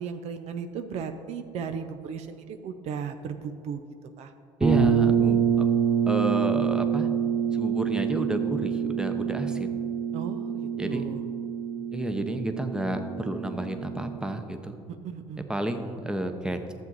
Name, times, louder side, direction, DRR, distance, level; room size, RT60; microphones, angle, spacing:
voice 1, 0.0-3.8 4.2-4.3 10.1-11.2 14.9-15.5, right 6 dB, 60° right, 8 dB, 0.6 m, -36 dB
voice 2, 4.6-5.7 6.1-7.1 7.5-9.7 10.7-11.0 11.9-14.7 15.5-16.7, right 1 dB, 5° right, 6 dB, 0.9 m, -30 dB
sound 1, 4.6-14.3, right 7 dB, 35° right, 2.0 m, -26 dB
12.0 x 7.3 x 4.0 m, 2.4 s
supercardioid pair, 80°, 12 cm